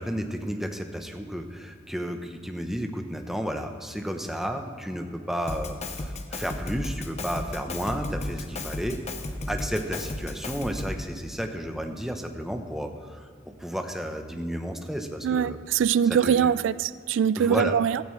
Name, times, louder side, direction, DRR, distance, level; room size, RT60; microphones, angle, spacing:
voice 1, 0.0-9.0 9.5-15.6 16.0-16.5 17.4-17.8, equal, ahead, 5 dB, 0.8 m, -32 dB
Drum kit, 5.5-11.1, left 1 dB, 35° left, 0.9 m, -34 dB
voice 2, 15.2-18.1, right 8 dB, 80° right, 18 dB, 0.3 m, -23 dB
16.0 x 13.0 x 3.2 m, 2.1 s
head